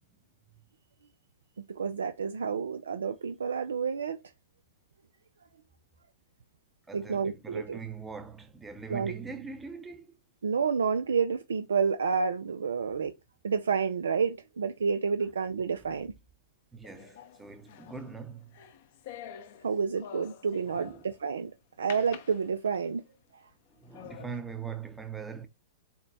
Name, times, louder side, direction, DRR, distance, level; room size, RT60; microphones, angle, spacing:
voice 1, 1.7-4.2 6.9-7.8 8.9-9.1 10.4-13.1 13.4-16.1 19.6-21.5 21.8-23.0, right 6 dB, 80° right, 0.3 m, -29 dB
voice 2, 6.9-10.2 15.8-15.9 16.7-18.5 20.6-21.1 23.8-25.5, right 6 dB, 10° right, 0.7 m, -42 dB
sound 1, 16.8-21.2 21.9-23.0 23.5-23.6 23.9-24.4, left 9 dB, 55° left, 0.6 m, -47 dB
4.2 x 2.1 x 4.0 m
hypercardioid pair, 110°, 0 cm